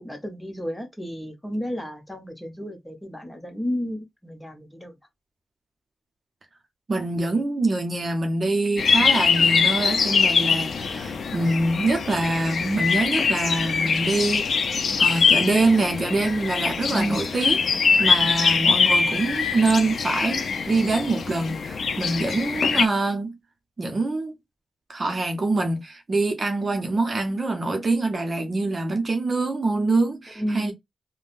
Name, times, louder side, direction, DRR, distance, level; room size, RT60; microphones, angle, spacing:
voice 1, 0.0-4.9 16.9-17.3 18.4-18.6 30.4-30.7, equal, 10° left, 1.0 m, -32 dB
voice 2, 6.9-14.7 15.0-17.6 18.0-23.3 23.8-24.3 24.9-30.7, right 2 dB, 45° right, 0.8 m, -25 dB
sound 1, 8.8-22.9, left 5 dB, 65° left, 0.5 m, -23 dB
3.4 x 2.2 x 2.5 m
cardioid pair, 70°, 0 cm